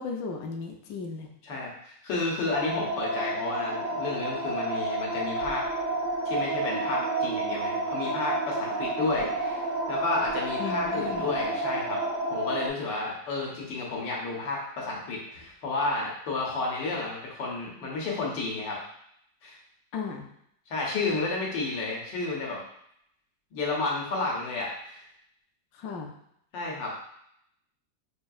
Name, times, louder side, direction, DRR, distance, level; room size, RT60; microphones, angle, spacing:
voice 1, 0.0-1.3 10.6-11.3 19.9-20.3 25.7-26.1, left 4 dB, 70° left, 2 dB, 0.9 m, -35 dB
voice 2, 1.4-5.6 6.2-12.0 12.3-18.8 19.4-19.5 20.7-22.6 23.5-25.0 26.5-26.9, left 3 dB, 85° left, -3 dB, 1.6 m, -31 dB
sound 1, 2.5-12.7, right 2 dB, 75° right, 1.3 m, -30 dB
5.3 x 2.6 x 2.3 m, 0.72 s
omnidirectional pair, 1.9 m